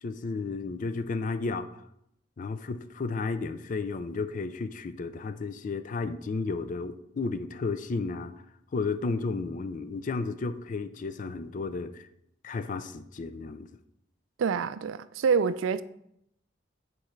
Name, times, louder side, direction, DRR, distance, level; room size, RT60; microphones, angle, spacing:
voice 1, 0.0-1.7 2.4-8.3 8.7-12.1 12.4-13.7, left 4 dB, 40° left, 0.4 m, -33 dB
voice 2, 14.4-15.8, right 6 dB, 85° right, 0.3 m, -26 dB
8.7 x 4.5 x 3.1 m
head